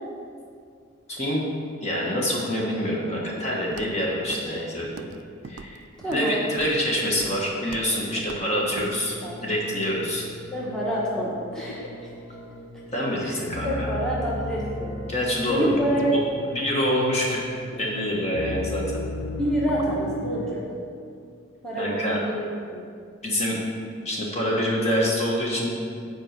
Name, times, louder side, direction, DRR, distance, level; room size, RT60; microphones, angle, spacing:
voice 1, 1.1-1.4 1.8-5.1 5.4-5.8 6.1-10.2 12.9-13.9 15.1-15.7 16.4-17.4 17.8-19.0 21.8-22.2 23.2-23.6 24.0-25.7, equal, 35° left, -3 dB, 1.3 m, -26 dB
Walk footsteps, 3.7-4.0 4.3-4.6 4.8-5.2 5.4-6.3 6.6-6.8 7.1-7.4 7.7-7.9 8.2-8.4 8.8-8.9, right 4 dB, 65° right, 0.4 m, -41 dB
voice 2, 6.0-6.4 8.4-8.5 9.2-9.4 10.5-12.1 13.2-13.3 13.6-15.0 15.5-16.1 19.4-20.6 21.6-22.4 22.7-22.8, right 1 dB, 5° left, -7 dB, 1.1 m, -27 dB
sound 1, 6.3-20.5, left 2 dB, 75° left, 0.6 m, -37 dB
7.5 x 4.7 x 6.6 m, 2.3 s
head